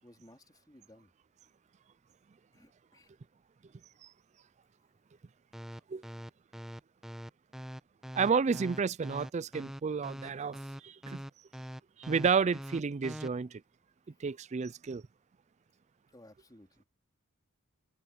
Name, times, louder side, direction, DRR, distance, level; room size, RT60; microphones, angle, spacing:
voice 1, 0.0-1.1 2.5-3.1 5.7-5.8 16.1-16.9, left 1 dB, 20° left, 3.5 m, -58 dB
sound 1, 5.5-13.3, equal, ahead, 1.3 m, -43 dB
voice 2, 8.1-10.6 10.8-11.2 12.0-13.6 14.2-15.0, right 5 dB, 30° right, 0.3 m, -31 dB
head